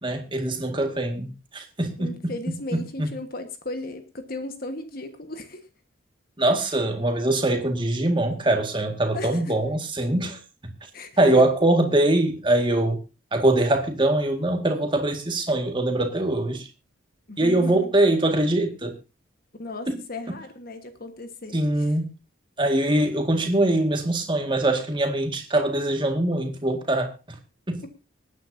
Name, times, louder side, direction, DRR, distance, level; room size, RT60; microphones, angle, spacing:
voice 1, 0.0-2.3 2.7-3.1 6.4-10.7 11.2-13.0 13.3-16.7 17.4-19.0 19.9-20.0 21.5-22.1 22.6-27.4 27.7-27.8, right 1 dB, 25° right, 4 dB, 1.9 m, -23 dB
voice 2, 2.0-5.7 9.1-9.5 10.9-11.3 17.3-17.9 19.6-21.9, left 2 dB, 45° left, 7 dB, 1.4 m, -36 dB
25.5 x 9.4 x 2.7 m, 0.28 s
head